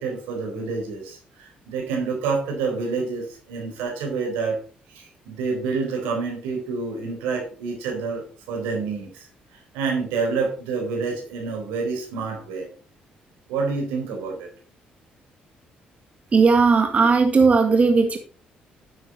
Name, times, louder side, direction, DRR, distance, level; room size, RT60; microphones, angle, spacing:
voice 1, 0.0-4.6 4.9-12.7 13.5-14.5, right 4 dB, 90° right, 2 dB, 4.2 m, -28 dB
voice 2, 16.3-18.2, right 4 dB, 40° right, 5 dB, 1.8 m, -17 dB
9.9 x 8.2 x 4.2 m, 0.38 s
supercardioid pair, 60°, 3 cm